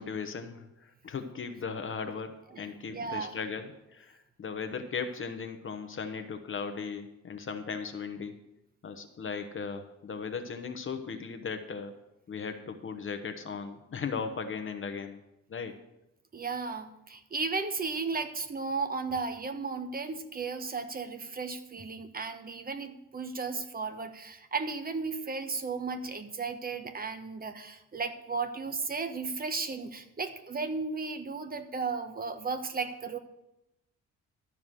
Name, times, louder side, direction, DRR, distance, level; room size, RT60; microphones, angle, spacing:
voice 1, 0.0-8.3 8.8-12.0 12.3-15.2 15.5-15.7, left 5 dB, 45° left, 7 dB, 1.0 m, -37 dB
voice 2, 2.9-3.3 16.3-33.2, right 4 dB, 30° right, 8 dB, 1.1 m, -35 dB
12.5 x 4.8 x 7.5 m, 0.89 s
cardioid pair, 90°, 30 cm